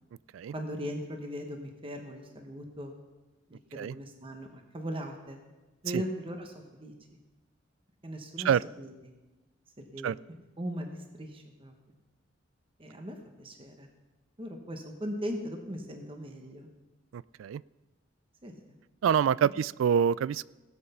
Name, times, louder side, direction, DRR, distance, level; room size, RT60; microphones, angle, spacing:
voice 1, 0.5-2.9 3.5-5.4 5.8-7.2 8.0-8.5 8.8-8.9 9.8-10.2 10.6-11.7 12.8-13.9 14.4-16.7 18.4-18.7, equal, 30° right, 3 dB, 1.2 m, -39 dB
voice 2, 17.1-17.6 19.0-20.5, right 8 dB, 90° right, 21 dB, 0.3 m, -26 dB
17.5 x 8.0 x 5.6 m, 1.2 s
head